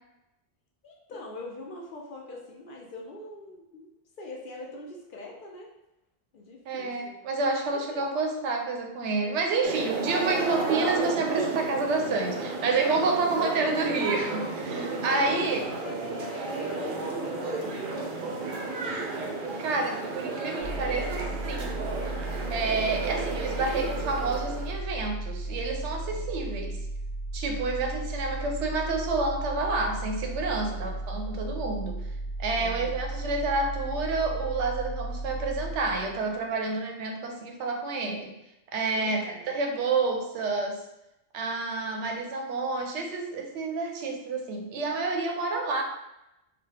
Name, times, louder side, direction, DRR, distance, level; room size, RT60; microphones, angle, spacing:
voice 1, 0.8-3.9 4.2-5.7 6.3-7.2 7.7-8.0 11.7-11.8 13.0-13.1 14.9-18.6 26.0-26.3 30.6-30.9 32.6-32.9 38.9-39.5, left 2 dB, 60° left, -1 dB, 0.6 m, -43 dB
voice 2, 6.7-15.7 19.6-21.7 22.0-22.1 22.5-26.8 27.3-32.0 32.4-38.3 38.7-40.8 41.3-45.8, right 3 dB, 90° right, 3 dB, 0.9 m, -29 dB
sound 1, 9.6-24.8, right 3 dB, 60° right, 0.6 m, -33 dB
sound 2, 20.6-36.4, right 2 dB, 80° left, 0.9 m, -35 dB
2.9 x 2.2 x 3.2 m, 0.89 s
omnidirectional pair, 1.1 m